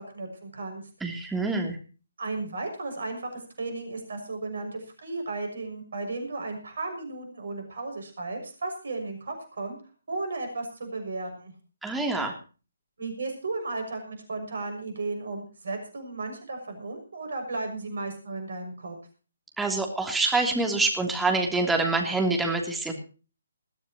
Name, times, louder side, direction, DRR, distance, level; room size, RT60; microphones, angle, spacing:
voice 1, 0.0-0.8 2.2-9.8 10.1-11.5 13.0-19.0, right 3 dB, 60° right, 5 dB, 6.4 m, -34 dB
voice 2, 1.0-1.8 11.8-12.3 19.6-22.9, right 3 dB, 5° right, 2 dB, 3.0 m, -26 dB
21.0 x 14.0 x 3.0 m, 0.36 s
figure-of-eight pair, 140°, 0 cm